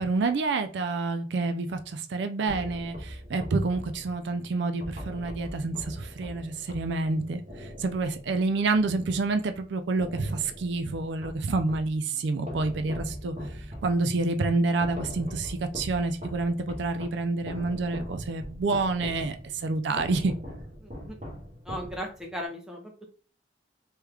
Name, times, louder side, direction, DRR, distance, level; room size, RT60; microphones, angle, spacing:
voice 1, 0.0-20.3, right 3 dB, 65° right, 8 dB, 0.4 m, -28 dB
sound 1, 2.5-9.6 10.0-12.0 12.5-22.4, equal, 35° right, 0.8 m, -41 dB
voice 2, 20.8-21.2 21.7-22.8, equal, 5° right, 0 dB, 0.6 m, -36 dB
3.1 x 2.3 x 3.3 m, 0.39 s
head